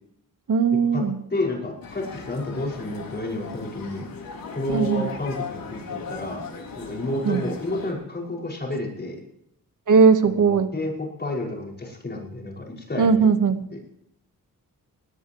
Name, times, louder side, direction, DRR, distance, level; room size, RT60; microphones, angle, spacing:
voice 1, 0.5-1.2 4.7-5.1 7.2-7.4 9.9-10.7 13.0-13.6, right 5 dB, 65° right, 9 dB, 1.3 m, -18 dB
voice 2, 1.3-4.1 4.5-6.4 6.8-9.2 10.3-13.3, left 2 dB, 30° left, -1 dB, 5.5 m, -30 dB
sound 1, 1.8-7.9, left 5 dB, 80° left, 5.0 m, -38 dB
20.0 x 20.0 x 3.0 m, 0.79 s
wide cardioid pair, 170°, 34 cm